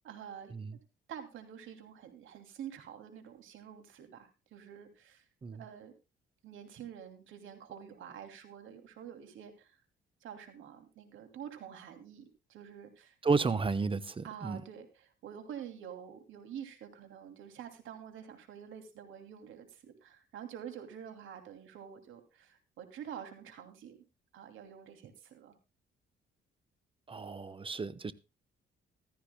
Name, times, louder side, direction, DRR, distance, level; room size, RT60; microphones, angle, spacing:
voice 1, 0.0-0.5 1.1-5.2 5.6-5.9 6.4-9.7 10.2-13.1 14.2-24.0 24.3-25.5, right 9 dB, 80° right, 2.9 m, -48 dB
voice 2, 13.2-14.6 27.1-28.1, right 4 dB, 25° right, 1.0 m, -32 dB
15.5 x 14.0 x 2.3 m
cardioid pair, 90°, 20 cm